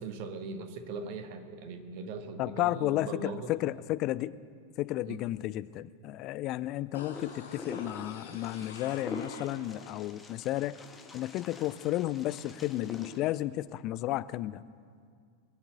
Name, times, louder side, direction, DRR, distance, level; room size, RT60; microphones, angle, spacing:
voice 1, 0.0-3.5 5.0-5.2, right 4 dB, 45° right, 8 dB, 1.3 m, -40 dB
voice 2, 2.4-4.4 4.8-10.8 11.1-14.6, left 15 dB, 40° left, 17 dB, 0.4 m, -32 dB
sound 1, 6.9-9.9 10.3-10.4, left 5 dB, 65° left, 1.8 m, -47 dB
Wind, 7.1-13.2, left 4 dB, 15° left, 1.4 m, -45 dB
21.5 x 7.2 x 7.8 m, 2.2 s
figure-of-eight pair, 90°, 0 cm